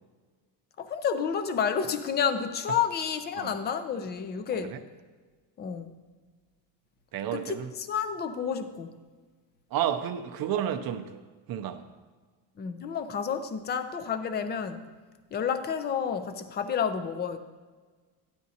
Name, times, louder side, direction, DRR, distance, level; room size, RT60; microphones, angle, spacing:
voice 1, 0.8-4.8 5.6-5.9 7.3-8.9 12.6-14.8 15.3-17.4, left 7 dB, 25° left, 10 dB, 0.4 m, -30 dB
voice 2, 7.1-7.7 9.7-11.1 11.5-11.8, right 10 dB, 50° right, 6 dB, 0.6 m, -31 dB
12.5 x 10.5 x 2.7 m, 1.4 s
cardioid pair, 170°, 45 cm